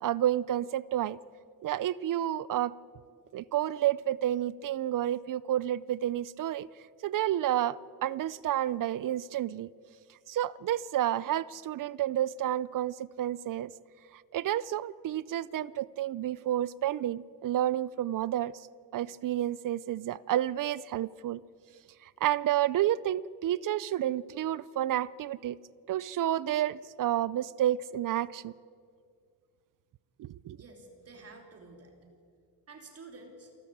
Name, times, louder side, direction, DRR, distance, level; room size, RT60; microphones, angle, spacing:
voice 1, 0.0-1.2 1.6-2.8 3.3-6.7 7.0-9.7 10.3-13.7 14.1-18.5 18.9-21.4 22.0-25.6 25.9-28.5 30.2-30.6, right 12 dB, 55° right, 0.5 m, -30 dB
voice 2, 30.5-31.9 32.7-33.5, right 3 dB, 40° right, 3.4 m, -50 dB
27.5 x 13.0 x 8.7 m
wide cardioid pair, 175°, 39 cm